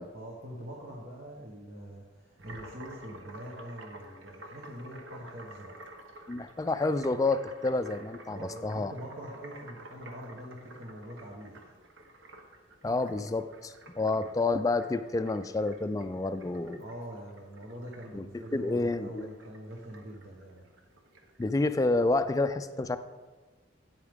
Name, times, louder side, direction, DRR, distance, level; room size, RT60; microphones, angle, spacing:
voice 1, 0.1-5.8 8.3-11.7 14.1-14.3 16.8-20.6, equal, 55° right, -4 dB, 1.2 m, -44 dB
sound 1, 2.4-21.5, right 1 dB, 75° right, 1.0 m, -51 dB
voice 2, 6.3-8.9 12.8-16.8 18.1-18.2 18.5-19.3 21.4-23.0, left 2 dB, 20° left, 10 dB, 0.3 m, -29 dB
8.9 x 8.3 x 3.6 m, 1.3 s
head